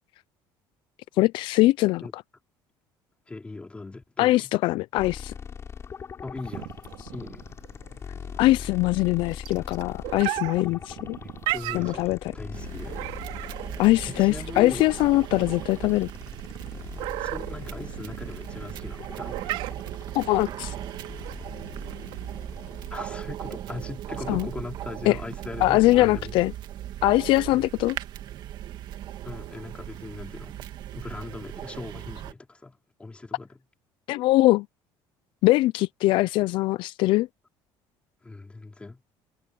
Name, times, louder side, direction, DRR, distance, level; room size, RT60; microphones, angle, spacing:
voice 1, 1.2-2.2 4.2-5.3 8.4-11.2 11.7-12.2 13.8-16.1 20.1-20.7 24.3-24.5 25.1-25.2 25.6-26.5 27.0-28.0 34.1-34.7 35.4-37.3, left 18 dB, 70° left, 0.4 m, -22 dB
voice 2, 3.3-4.5 6.2-6.8 7.1-7.5 10.7-10.8 11.2-13.1 14.1-14.9 17.2-19.4 22.9-26.4 27.5-27.7 29.2-30.6 30.9-33.6 38.2-39.0, left 3 dB, 15° left, 3.8 m, -39 dB
sound 1, 5.0-23.3, left 6 dB, 30° left, 5.6 m, -42 dB
sound 2, 6.4-22.3, right 19 dB, 90° right, 4.4 m, -37 dB
sound 3, 12.5-32.3, right 12 dB, 55° right, 2.0 m, -38 dB
cardioid pair, 145°, 9 cm